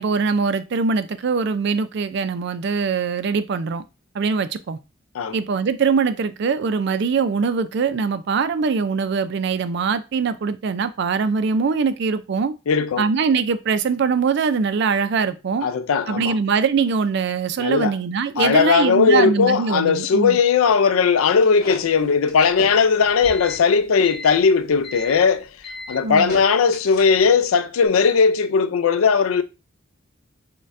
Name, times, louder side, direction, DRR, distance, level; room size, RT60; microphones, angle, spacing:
voice 1, 0.0-3.8 4.1-4.8 5.3-12.5 13.0-15.7 16.1-20.4 26.0-26.3, right 5 dB, 55° right, 0.3 m, -22 dB
voice 2, 12.7-13.1 15.6-16.4 17.6-17.9 18.4-25.5 25.9-29.4, left 5 dB, 85° left, 0.4 m, -18 dB
sound 1, 21.2-27.4, left 2 dB, 50° left, 1.6 m, -36 dB
6.3 x 2.2 x 2.5 m
head